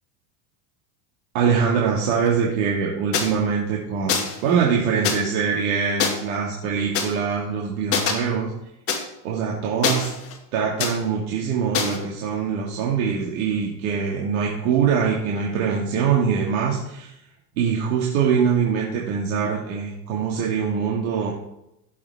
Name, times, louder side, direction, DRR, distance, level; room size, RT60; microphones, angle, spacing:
voice 1, 1.3-8.5 9.2-10.1 10.5-17.1 17.6-21.3, right 6 dB, 75° right, -3 dB, 2.2 m, -23 dB
sound 1, 3.1-3.3 4.1-4.4 5.0-5.2 6.0-6.1 6.9-7.1 7.9-8.1 8.9-9.0 9.8-10.4 10.8-10.9 11.7-12.0, left 6 dB, 30° left, 2.0 m, -23 dB
16.0 x 7.3 x 3.6 m, 0.85 s
supercardioid pair, 140°, 43 cm